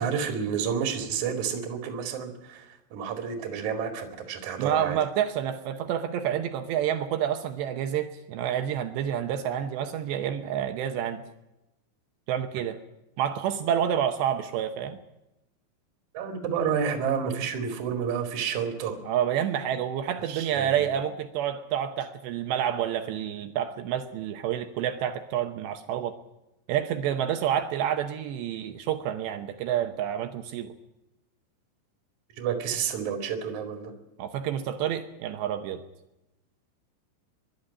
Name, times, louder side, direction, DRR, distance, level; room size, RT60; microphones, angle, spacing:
voice 1, 0.0-5.0 16.1-19.0 20.3-20.9 32.4-33.9, right 7 dB, 45° right, 4 dB, 3.0 m, -30 dB
voice 2, 4.6-11.2 12.3-12.8 13.2-15.0 19.1-26.2 26.7-30.7 34.2-35.8, right 10 dB, 75° right, 7 dB, 2.6 m, -28 dB
23.0 x 12.0 x 9.9 m, 0.95 s
omnidirectional pair, 5.9 m